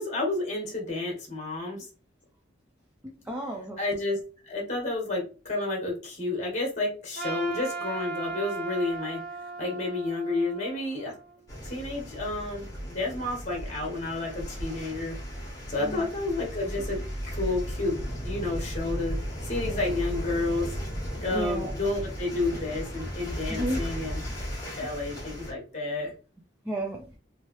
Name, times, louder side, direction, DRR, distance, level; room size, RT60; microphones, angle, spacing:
voice 1, 0.0-1.9 3.8-4.2 4.4-9.2 9.6-11.1 11.6-15.2 15.7-20.7 21.2-24.2 24.8-26.1, left 2 dB, 35° left, -1 dB, 1.3 m, -31 dB
voice 2, 3.0-3.8 15.8-16.0 19.6-19.8 21.3-21.7 23.5-23.8 26.7-27.0, right 1 dB, 10° right, -2 dB, 0.4 m, -32 dB
Trumpet, 7.1-11.4, right 4 dB, 55° right, 1.3 m, -37 dB
sound 1, 11.5-25.5, equal, 15° left, 1.3 m, -35 dB
3.2 x 2.7 x 3.0 m, 0.35 s
head